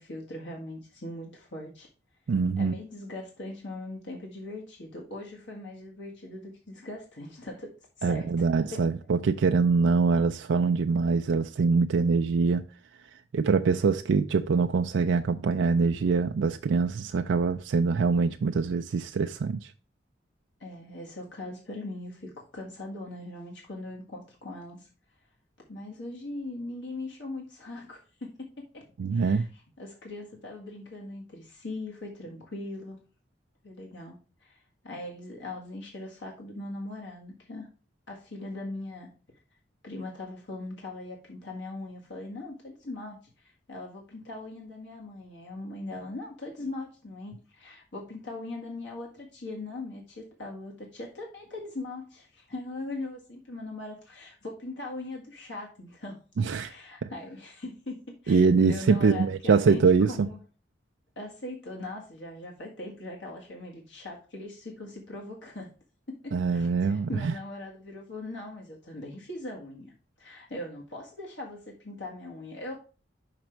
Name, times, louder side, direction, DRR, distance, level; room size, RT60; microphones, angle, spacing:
voice 1, 0.0-1.9 2.5-8.3 8.6-8.8 20.6-24.9 25.7-28.8 29.1-29.5 29.8-33.0 33.6-37.7 38.1-39.1 39.8-56.2 56.5-60.4 61.1-65.7 66.1-72.8, left 2 dB, 75° left, 1.7 m, -40 dB
voice 2, 2.3-2.7 8.0-12.6 13.3-19.7 29.0-29.5 56.4-56.7 57.0-57.1 58.3-60.3 66.3-67.3, right 5 dB, 85° right, 0.4 m, -24 dB
5.9 x 5.2 x 4.5 m
head